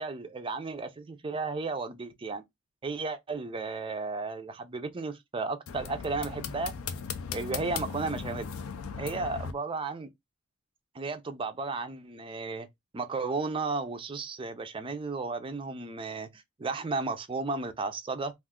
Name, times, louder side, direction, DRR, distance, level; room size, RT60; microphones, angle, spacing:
voice 1, 0.0-2.4 2.8-6.7 7.3-8.5 9.0-10.1 10.9-12.7 12.9-18.3, right 3 dB, 25° right, 0.4 m, -34 dB
sound 1, 5.7-9.5, left 6 dB, 70° left, 0.4 m, -37 dB
2.4 x 2.3 x 3.5 m
head